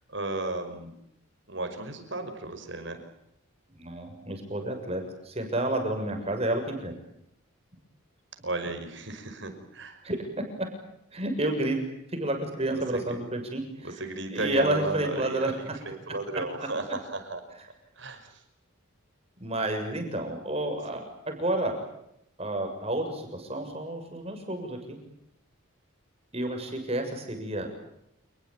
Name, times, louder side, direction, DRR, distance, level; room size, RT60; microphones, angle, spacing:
voice 1, 0.1-0.9 1.5-3.0 6.2-6.3 8.4-10.0 12.8-13.2 13.8-17.4 18.0-18.3 20.2-20.3 20.9-21.0, right 2 dB, 55° right, 6 dB, 5.5 m, -34 dB
voice 2, 3.8-6.9 10.0-10.2 10.6-10.7 11.1-11.8 12.1-14.0 14.3-15.5 19.4-21.8 22.4-25.0 26.3-27.7, right 1 dB, 30° right, 4 dB, 6.8 m, -30 dB
28.5 x 21.0 x 8.9 m, 0.78 s
head